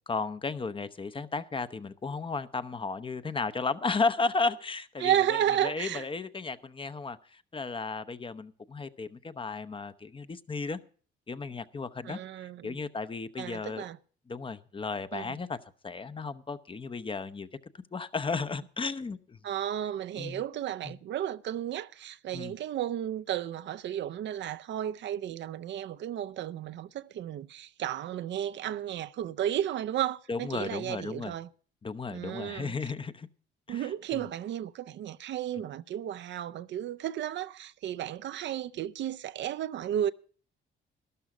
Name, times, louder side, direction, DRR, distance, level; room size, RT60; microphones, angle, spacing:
voice 1, 0.1-10.8 11.3-13.8 14.3-15.6 15.8-17.5 17.9-19.4 20.2-20.4 20.8-21.0 22.3-22.5 30.3-31.3 31.8-33.3 33.7-34.3, left 4 dB, 25° left, 0.7 m, -34 dB
voice 2, 5.0-6.1 12.0-12.8 13.4-14.0 15.1-15.4 19.4-31.5 32.1-32.7 33.7-40.1, right 11 dB, 65° right, 0.5 m, -33 dB
12.5 x 11.5 x 4.9 m
cardioid pair, 90°, 20 cm